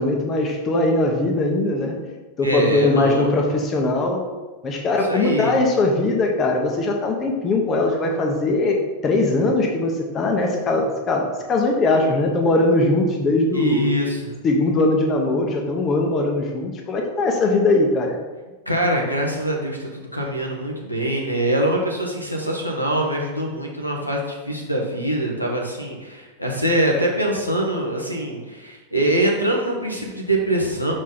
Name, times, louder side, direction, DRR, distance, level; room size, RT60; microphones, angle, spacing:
voice 1, 0.0-2.0 2.4-4.2 4.6-8.8 9.0-13.9 14.4-18.2, left 2 dB, 30° left, 1 dB, 0.9 m, -20 dB
voice 2, 2.4-3.3 5.1-5.6 13.5-14.3 18.7-30.9, right 1 dB, 90° left, -1 dB, 1.0 m, -23 dB
6.1 x 4.4 x 3.9 m, 1.2 s
figure-of-eight pair, 90°, 0 cm